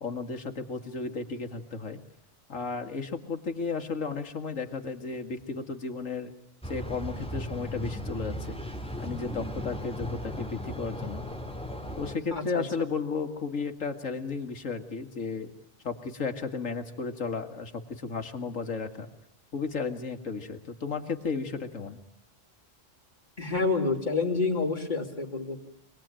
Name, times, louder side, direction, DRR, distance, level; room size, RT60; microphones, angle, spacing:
voice 1, 0.0-2.0 2.5-6.3 6.6-8.6 9.0-11.3 12.0-15.5 15.8-19.1 19.5-22.0, left 4 dB, 80° left, 6 dB, 2.3 m, -34 dB
sound 1, 6.6-12.2, left 1 dB, 5° left, 2.3 m, -36 dB
voice 2, 12.3-12.6 23.4-25.7, left 3 dB, 35° left, 2 dB, 3.2 m, -28 dB
26.5 x 19.5 x 9.0 m, 0.78 s
omnidirectional pair, 1.3 m